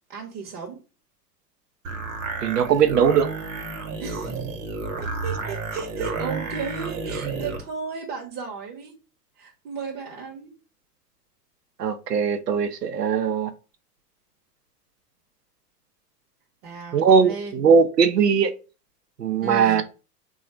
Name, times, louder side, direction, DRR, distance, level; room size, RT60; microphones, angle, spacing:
voice 1, 0.1-0.8 4.0-4.4 5.0-9.0 9.4-10.5 16.6-17.6 19.4-19.8, right 5 dB, 35° right, 0.8 m, -35 dB
sound 1, 1.8-7.6, right 4 dB, 55° right, 1.1 m, -31 dB
voice 2, 2.4-3.3 11.8-13.5 16.9-18.5 19.2-19.8, right 6 dB, 85° right, 0.7 m, -19 dB
3.8 x 2.4 x 4.2 m
figure-of-eight pair, 95°, 47 cm